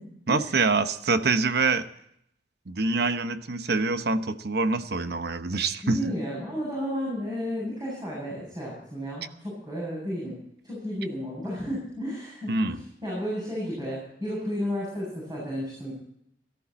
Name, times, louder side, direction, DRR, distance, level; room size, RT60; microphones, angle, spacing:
voice 1, 0.3-1.9 2.7-6.1 12.5-12.8, right 3 dB, 65° right, 10 dB, 1.0 m, -25 dB
voice 2, 5.8-10.4 10.6-15.9, equal, 25° right, -6 dB, 7.7 m, -32 dB
18.0 x 14.0 x 4.2 m, 0.73 s
head